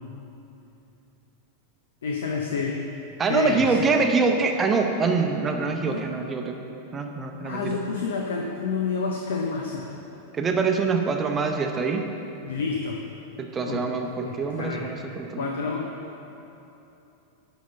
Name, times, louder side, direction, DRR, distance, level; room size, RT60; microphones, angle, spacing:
voice 1, 2.0-2.8 3.3-3.8 5.9-6.1 7.4-9.9 12.4-13.0 13.7-13.8 14.3-14.9 15.4-15.9, left 5 dB, 60° left, 1 dB, 0.6 m, -29 dB
voice 2, 3.2-6.6 6.9-7.8 10.3-12.0 13.4-15.5, right 4 dB, 20° right, 4 dB, 0.8 m, -25 dB
10.0 x 4.1 x 6.4 m, 3.0 s
figure-of-eight pair, 90°, 0 cm